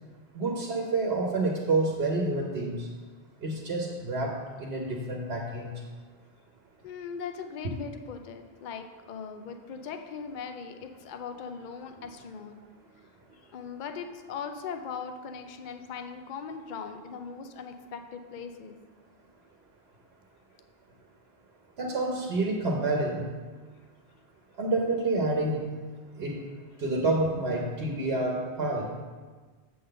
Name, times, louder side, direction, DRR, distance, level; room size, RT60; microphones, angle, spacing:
voice 1, 0.3-2.9 3.4-5.7 21.8-23.2 24.6-25.7 26.2-26.4 26.8-28.9, right 2 dB, 75° right, 0 dB, 1.1 m, -28 dB
voice 2, 6.8-12.6 13.4-18.8, left 6 dB, 55° left, 6 dB, 0.7 m, -39 dB
7.8 x 3.9 x 6.5 m, 1.4 s
omnidirectional pair, 1.0 m